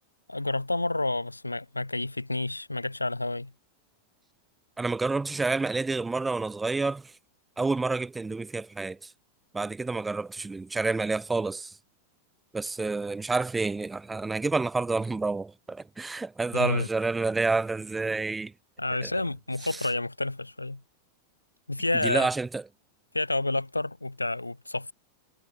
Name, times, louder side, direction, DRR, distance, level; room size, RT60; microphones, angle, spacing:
voice 1, 0.3-3.5 16.5-16.9 18.8-20.8 21.7-22.3 23.1-24.9, left 2 dB, 85° left, 7.4 m, -29 dB
voice 2, 4.8-7.1 7.6-9.1 9.5-11.7 12.5-18.5 19.0-19.1 19.7-19.9 22.0-22.6, right 3 dB, 10° right, 6.6 m, -29 dB
figure-of-eight pair, 90°, 0 cm